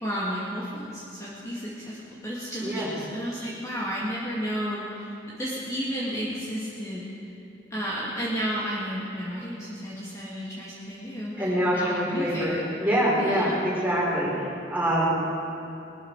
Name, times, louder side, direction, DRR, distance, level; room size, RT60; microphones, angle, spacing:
voice 1, 0.0-7.1 7.7-12.6 13.2-13.6, equal, 15° left, -7 dB, 2.2 m, -32 dB
voice 2, 2.6-2.9 11.4-12.5 12.8-14.3 14.7-15.2, equal, 10° right, -6 dB, 4.5 m, -24 dB
20.0 x 13.5 x 4.8 m, 2.8 s
head